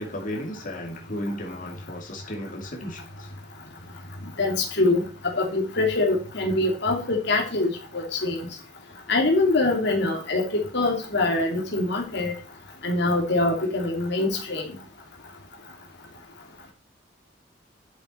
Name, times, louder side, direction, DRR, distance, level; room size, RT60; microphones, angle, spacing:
voice 1, 0.0-3.3, equal, 45° left, 0 dB, 2.7 m, -34 dB
voice 2, 4.4-5.0 5.3-8.5 9.1-12.3 12.8-14.7, left 2 dB, 65° left, 1 dB, 2.6 m, -24 dB
11.0 x 7.6 x 4.5 m, 0.34 s
head